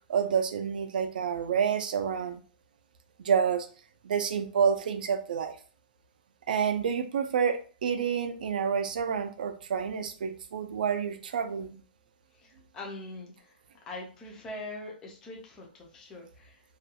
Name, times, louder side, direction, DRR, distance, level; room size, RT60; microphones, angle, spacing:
voice 1, 0.1-2.4 3.2-3.7 4.0-5.5 6.5-11.8, right 7 dB, 60° right, 0.3 m, -28 dB
voice 2, 12.3-13.6 13.9-16.6, left 2 dB, 10° left, 0.3 m, -43 dB
2.4 x 2.2 x 2.7 m
hypercardioid pair, 180°, 5 cm